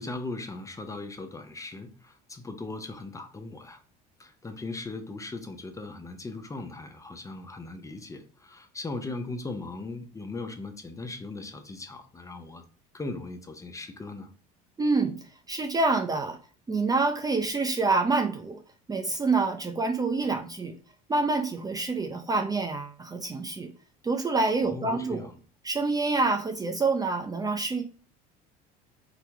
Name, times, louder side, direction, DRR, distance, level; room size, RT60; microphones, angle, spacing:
voice 1, 0.0-3.8 4.2-12.6 12.9-14.3 24.6-25.3, left 3 dB, 15° left, 0.8 m, -38 dB
voice 2, 14.8-15.2 15.5-16.4 16.7-18.6 18.9-20.8 21.1-23.7 24.0-25.3 25.6-27.8, right 3 dB, 20° right, 0.6 m, -27 dB
3.9 x 2.8 x 4.6 m
supercardioid pair, 95°, 20 cm